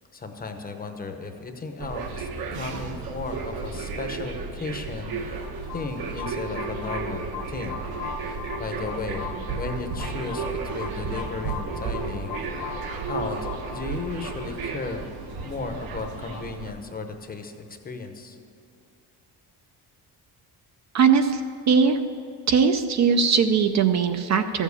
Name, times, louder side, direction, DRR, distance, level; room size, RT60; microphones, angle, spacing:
voice 1, 0.1-5.4 5.7-7.8 8.2-12.4 13.1-15.1 15.4-18.4, left 4 dB, 20° left, 5 dB, 0.8 m, -35 dB
sound 1, 1.8-16.7, right 5 dB, 60° right, 1.2 m, -34 dB
sound 2, 5.0-16.4, left 4 dB, 80° left, 1.9 m, -39 dB
voice 2, 20.9-21.4 21.7-22.0 22.5-24.6, right 6 dB, 45° right, 8 dB, 0.5 m, -20 dB
13.5 x 7.3 x 8.2 m, 2.6 s
cardioid pair, 180°, 41 cm